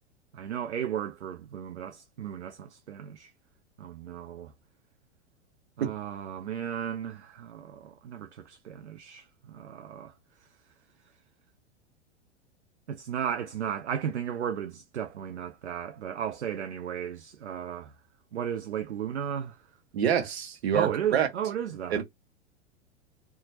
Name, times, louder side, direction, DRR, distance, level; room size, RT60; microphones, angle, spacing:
voice 1, 0.3-3.3 3.8-4.5 5.8-10.1 12.9-17.9 18.3-19.6 20.7-22.0, right 9 dB, 80° right, 0.5 m, -34 dB
voice 2, 19.9-21.3 21.9-22.0, right 8 dB, 65° right, 1.0 m, -26 dB
2.7 x 2.2 x 2.9 m
figure-of-eight pair, 95°, 34 cm